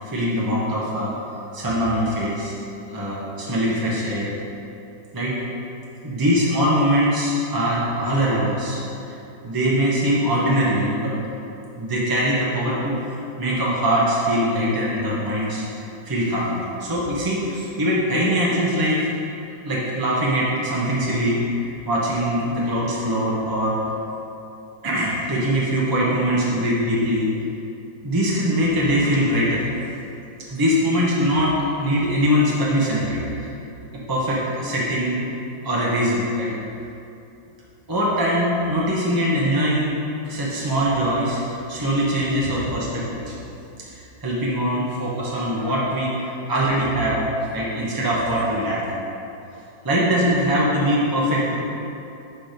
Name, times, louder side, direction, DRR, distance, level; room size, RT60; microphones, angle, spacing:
voice 1, 0.0-1.1 1.5-2.5 2.9-4.3 5.1-5.4 6.0-8.8 9.4-11.1 11.8-13.0 13.4-15.6 16.0-19.1 19.6-23.8 24.8-27.3 28.0-29.7 30.5-33.5 34.1-35.2 35.6-36.5 37.9-39.9 40.2-43.3 43.8-47.3 47.5-48.8 49.8-51.6, equal, 20° right, -6 dB, 0.5 m, -22 dB
7.0 x 4.6 x 5.1 m, 2.8 s
omnidirectional pair, 2.1 m